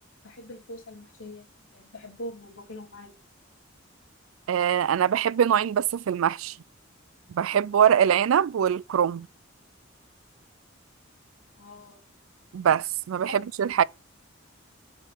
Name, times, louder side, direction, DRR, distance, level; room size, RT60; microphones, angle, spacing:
voice 1, 0.2-1.5 1.7-3.1 11.6-12.0 13.2-13.4 13.7-13.8, left 1 dB, 80° left, 2.9 m, -42 dB
voice 2, 4.5-6.6 7.3-9.3 12.5-13.8, right 8 dB, 85° right, 0.4 m, -23 dB
7.4 x 4.5 x 5.4 m
head